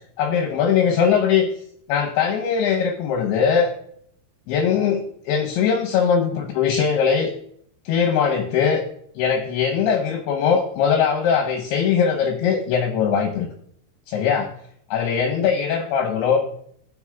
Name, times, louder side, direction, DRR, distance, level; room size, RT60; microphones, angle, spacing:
voice 1, 0.2-1.5 1.9-3.7 4.5-7.3 7.9-8.8 9.2-13.5 14.1-14.5 14.9-16.4, left 7 dB, 75° left, 1 dB, 2.6 m, -20 dB
16.5 x 6.1 x 2.3 m, 0.65 s
omnidirectional pair, 5.2 m